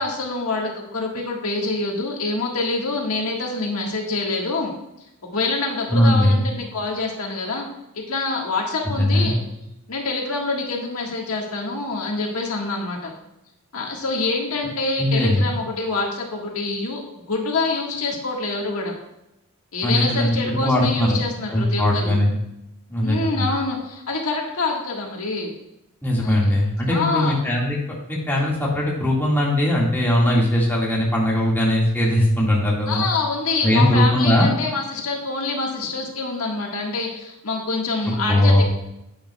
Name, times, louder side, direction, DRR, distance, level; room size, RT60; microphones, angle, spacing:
voice 1, 0.0-4.7 5.3-7.7 7.9-9.4 9.9-13.1 13.7-17.0 17.3-18.9 19.7-22.2 23.0-25.5 26.2-26.4 26.9-27.3 32.9-38.6, left 3 dB, 75° left, 0 dB, 1.5 m, -26 dB
voice 2, 5.9-6.4 9.0-9.3 15.0-15.5 19.8-21.2 21.5-22.3 22.9-23.5 26.0-27.8 28.1-33.0 33.6-34.5 38.1-38.6, left 1 dB, 10° left, -4 dB, 1.8 m, -19 dB
10.5 x 8.7 x 2.3 m, 0.87 s
head